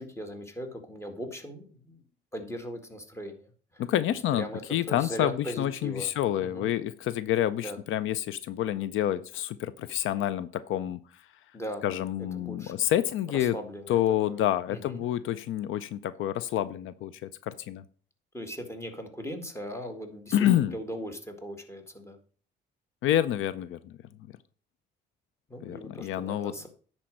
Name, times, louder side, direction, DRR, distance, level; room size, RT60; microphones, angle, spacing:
voice 1, 0.0-2.0 2.3-3.5 3.7-3.8 4.3-4.6 4.9-6.1 6.4-6.7 7.6-7.8 11.5-11.8 12.4-12.9 13.4-14.0 14.3-14.4 14.7-15.0 18.3-22.2 25.5-26.7, equal, 15° left, 5 dB, 1.8 m, -39 dB
voice 2, 3.8-11.2 11.8-13.6 13.9-17.8 20.3-20.7 23.0-24.0 25.6-26.7, left 12 dB, 80° left, 16 dB, 0.5 m, -28 dB
10.0 x 4.4 x 6.3 m, 0.43 s
cardioid pair, 90°, 20 cm